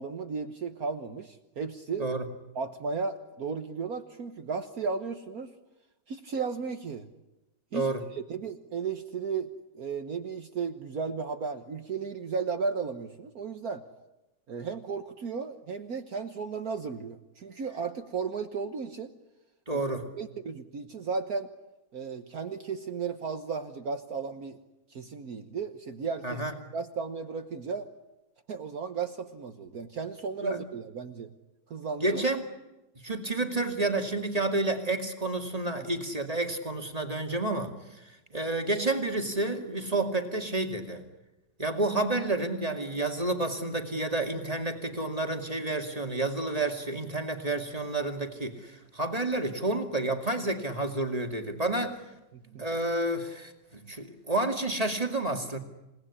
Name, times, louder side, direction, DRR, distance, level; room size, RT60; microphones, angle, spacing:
voice 1, 0.0-2.1 2.5-5.5 6.1-7.1 7.7-9.5 9.7-13.8 14.5-19.1 19.7-19.8 20.2-21.5 21.9-24.6 24.9-26.4 26.7-27.9 28.5-31.3 31.7-32.2 35.8-35.9 52.3-52.7, right 5 dB, 60° right, 7 dB, 1.6 m, -34 dB
voice 2, 19.7-20.1 26.2-26.5 30.4-30.6 32.0-32.5 33.0-37.7 38.3-41.0 41.6-52.0 52.6-55.6, right 2 dB, 20° right, 4 dB, 2.4 m, -30 dB
28.5 x 18.5 x 9.9 m, 1.0 s
omnidirectional pair, 1.9 m